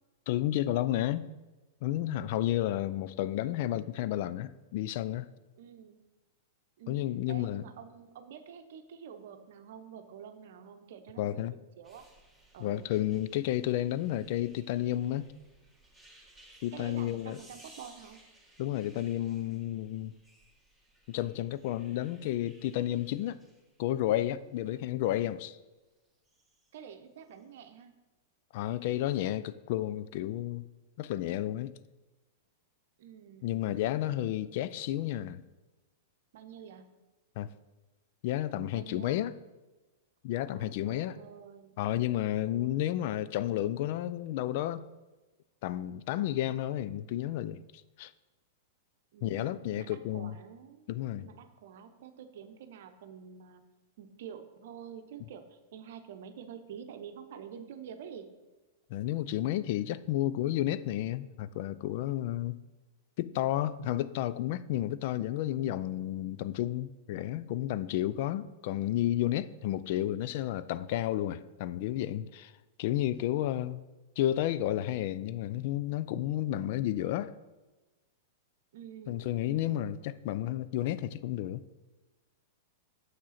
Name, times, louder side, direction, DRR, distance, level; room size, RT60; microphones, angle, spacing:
voice 1, 0.3-1.3 1.8-5.3 6.9-7.7 11.2-11.5 12.6-15.3 16.6-17.4 18.6-20.1 21.1-23.4 23.8-25.6 28.5-30.7 31.0-31.7 33.4-35.4 37.4-37.5 38.2-39.3 40.2-41.2 41.8-44.9 45.6-47.6 48.0-48.1 49.2-50.4 50.9-51.3 58.9-62.6 63.2-72.5 72.8-73.8 74.2-77.3 79.1-81.6, left 13 dB, 55° left, 0.3 m, -31 dB
voice 2, 5.6-6.0 6.8-11.4 11.8-12.1 12.5-12.8 16.7-18.2 24.7-24.8 26.7-27.9 33.0-33.9 36.3-37.0 38.7-39.2 40.4-41.8 42.4-43.0 49.1-50.9 51.2-53.7 54.0-58.3 78.7-79.9, right 8 dB, 60° right, 0.7 m, -48 dB
sound 1, 11.8-25.3 26.1-26.7 27.2-27.4, right 1 dB, ahead, 1.8 m, -60 dB
7.3 x 6.2 x 4.1 m
hypercardioid pair, 100°, 0 cm